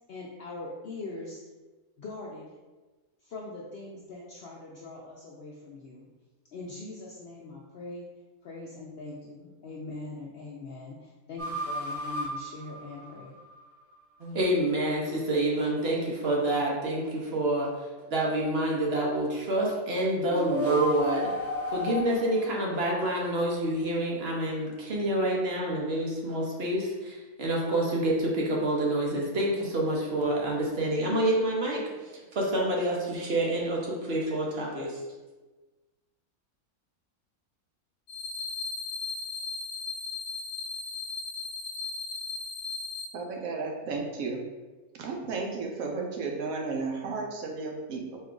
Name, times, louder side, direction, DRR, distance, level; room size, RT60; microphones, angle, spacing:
voice 1, 0.1-1.4 2.0-2.5 3.2-6.1 6.5-8.1 8.4-13.3, left 2 dB, 65° left, -3 dB, 0.6 m, -42 dB
sound 1, 11.4-13.7 20.2-23.6, equal, 15° right, 0.6 m, -34 dB
voice 2, 14.2-17.7 18.0-21.3 21.7-35.0, right 1 dB, 55° right, -2 dB, 0.8 m, -28 dB
sound 2, 38.1-43.1, left 4 dB, 85° left, 1.1 m, -36 dB
voice 3, 43.1-44.4 45.0-48.2, right 4 dB, 75° right, 1 dB, 1.0 m, -33 dB
4.3 x 2.3 x 3.7 m, 1.2 s
omnidirectional pair, 1.5 m